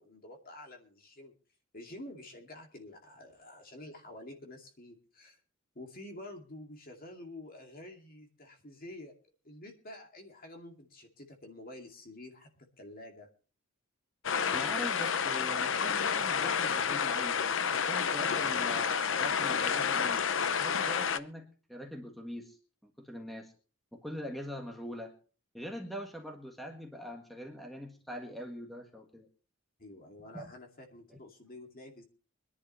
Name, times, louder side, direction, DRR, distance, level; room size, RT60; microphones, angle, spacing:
voice 1, 0.0-1.3 1.7-5.4 5.7-9.1 9.4-13.3 29.8-32.0, left 1 dB, 45° left, 3 dB, 2.4 m, -49 dB
sound 1, 14.2-21.2, left 7 dB, 60° left, 0.6 m, -30 dB
voice 2, 14.5-17.4 17.7-20.2 20.6-22.6 22.8-23.5 23.9-25.1 25.5-29.3 30.3-30.5 31.1-31.2, equal, ahead, 2 dB, 1.6 m, -43 dB
24.0 x 11.0 x 3.2 m, 0.39 s
head